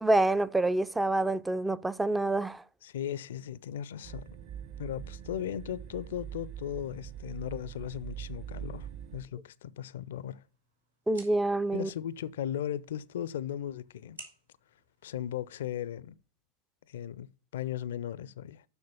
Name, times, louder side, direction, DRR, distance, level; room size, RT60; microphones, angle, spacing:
voice 1, 0.0-2.6 11.1-11.9, right 2 dB, 5° right, 0.3 m, -27 dB
voice 2, 2.8-4.2 4.8-10.4 11.7-14.2 15.0-16.2 16.9-17.3 17.5-18.6, left 10 dB, 60° left, 0.4 m, -37 dB
sound 1, 4.0-9.2, right 10 dB, 45° right, 0.7 m, -43 dB
sound 2, 9.9-15.9, right 3 dB, 90° right, 4.2 m, -56 dB
6.9 x 6.3 x 6.7 m
figure-of-eight pair, 90°, 0 cm